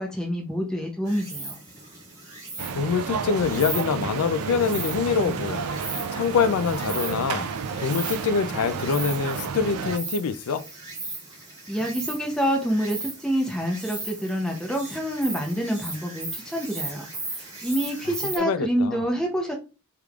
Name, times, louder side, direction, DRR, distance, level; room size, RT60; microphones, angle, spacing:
voice 1, 0.0-1.6 11.7-19.6, equal, 5° left, 0.6 m, -27 dB
Insect, 1.1-18.4, right 3 dB, 20° right, 2.0 m, -37 dB
sound 1, 2.6-10.0, right 5 dB, 90° right, 0.4 m, -31 dB
voice 2, 2.8-5.6 6.1-7.5 7.8-10.6 18.4-19.0, left 6 dB, 75° left, 0.4 m, -25 dB
4.7 x 3.5 x 2.3 m
head